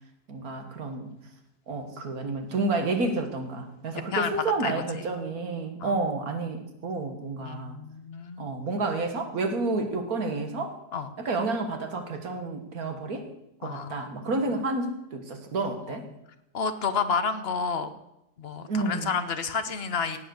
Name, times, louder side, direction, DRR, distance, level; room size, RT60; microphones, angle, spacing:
voice 1, 0.3-1.1 1.7-7.8 8.4-10.8 11.2-13.3 13.6-16.1 18.7-19.2, right 3 dB, 55° right, 6 dB, 2.1 m, -30 dB
voice 2, 7.4-8.5 10.9-11.1 13.6-14.1 16.5-17.9 18.4-20.2, left 5 dB, 40° left, 10 dB, 1.0 m, -30 dB
17.5 x 8.0 x 6.4 m, 0.87 s
omnidirectional pair, 1.9 m